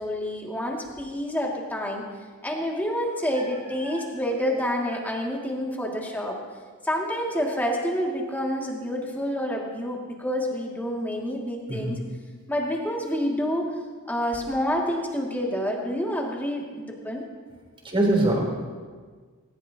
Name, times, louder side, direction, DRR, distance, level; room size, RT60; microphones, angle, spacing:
voice 1, 0.0-2.0 2.4-6.4 6.8-12.0 12.5-13.7 14.1-17.2, equal, 10° left, -2 dB, 2.5 m, -28 dB
voice 2, 17.9-18.4, right 1 dB, 25° right, -2 dB, 4.0 m, -22 dB
19.5 x 19.0 x 3.0 m, 1.5 s
head